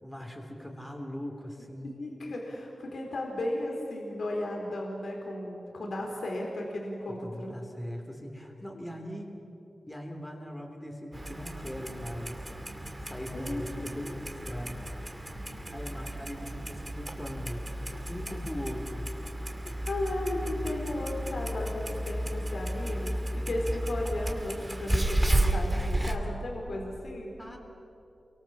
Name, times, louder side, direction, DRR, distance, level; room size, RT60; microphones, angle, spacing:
voice 1, 0.0-1.9 7.1-9.3 9.9-12.4 13.0-14.9 15.7-19.1 27.4-27.6, equal, 10° left, 1 dB, 3.3 m, -40 dB
voice 2, 1.9-7.5 13.3-14.2 17.9-18.0 19.9-27.4, left 1 dB, 80° left, -1 dB, 4.4 m, -35 dB
Clock, 11.1-26.2, right 1 dB, 15° right, 2.5 m, -33 dB
29.0 x 24.0 x 7.4 m, 2.9 s
wide cardioid pair, 95°, 0 cm